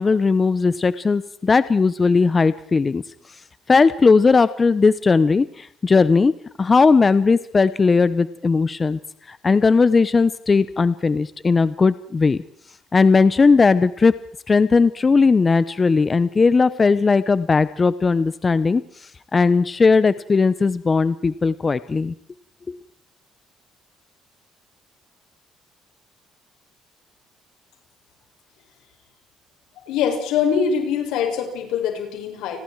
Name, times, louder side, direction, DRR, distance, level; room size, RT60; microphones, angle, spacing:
voice 1, 0.0-3.0 3.7-6.3 6.6-9.0 9.3-12.4 12.9-14.1 14.5-18.8 19.3-22.1 22.7-22.8, left 4 dB, 25° left, 15 dB, 0.9 m, -17 dB
voice 2, 29.9-32.6, left 7 dB, 90° left, 3 dB, 7.2 m, -23 dB
30.0 x 21.5 x 4.8 m, 0.63 s
cardioid pair, 115°, 0 cm